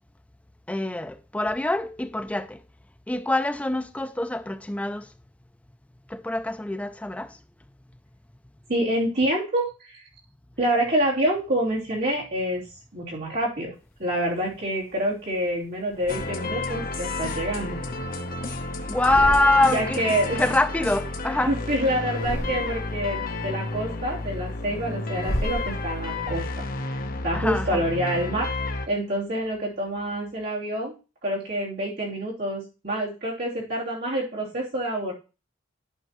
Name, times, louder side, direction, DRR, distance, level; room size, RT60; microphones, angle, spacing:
voice 1, 0.7-2.6 3.1-5.1 6.1-7.4 18.9-20.0 20.4-21.5 27.3-27.8, left 2 dB, 5° left, 0.3 m, -24 dB
voice 2, 8.7-10.0 10.6-12.6 12.9-13.7 14.0-17.8 19.7-20.5 21.4-26.5 26.8-28.5 28.9-30.9 31.2-35.1, right 1 dB, 55° right, 3.1 m, -27 dB
sound 1, 14.0-15.2 15.8-16.8 17.3-18.5 18.8-20.0 20.2-21.6 22.0-23.0 23.5-26.2, equal, 75° left, 2.6 m, -36 dB
sound 2, 16.1-28.9, left 2 dB, 45° left, 0.8 m, -31 dB
11.0 x 5.4 x 3.0 m
head